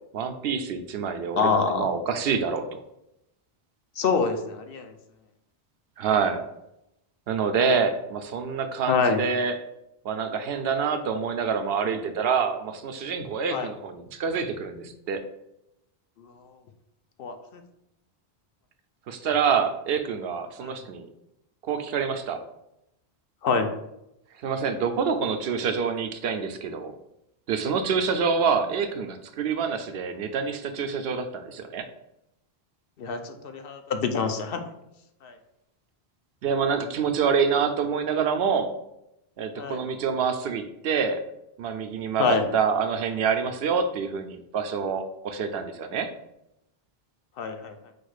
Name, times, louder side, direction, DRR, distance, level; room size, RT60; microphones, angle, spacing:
voice 1, 0.1-2.8 6.0-6.4 7.3-9.6 10.0-15.2 19.1-21.1 21.6-22.4 24.4-26.9 27.5-31.9 36.4-38.7 39.4-41.2 41.6-46.1, right 6 dB, 75° right, 8 dB, 0.8 m, -26 dB
voice 2, 1.4-1.9 4.0-4.9 8.9-9.2 13.5-13.7 17.2-17.3 20.6-20.7 23.4-23.7 33.0-34.6 35.2-35.3 39.6-39.8 42.2-42.5 47.4-47.7, left 5 dB, 65° left, 6 dB, 0.8 m, -25 dB
4.5 x 2.4 x 4.7 m, 0.82 s
omnidirectional pair, 1.0 m